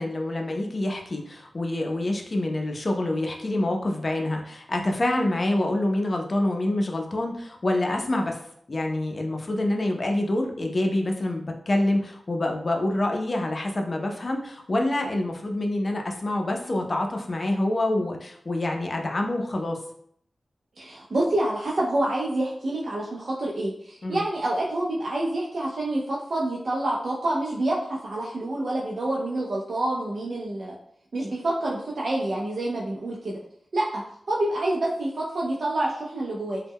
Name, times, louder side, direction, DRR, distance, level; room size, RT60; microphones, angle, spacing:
voice 1, 0.0-8.4 8.7-19.8 24.0-24.2, left 1 dB, 45° left, 2 dB, 0.4 m, -26 dB
voice 2, 20.8-27.8 28.0-30.8 31.1-33.4 33.7-34.0 34.3-36.6, right 1 dB, 65° right, -4 dB, 0.4 m, -27 dB
2.1 x 2.0 x 3.4 m, 0.67 s
wide cardioid pair, 85°, 0 cm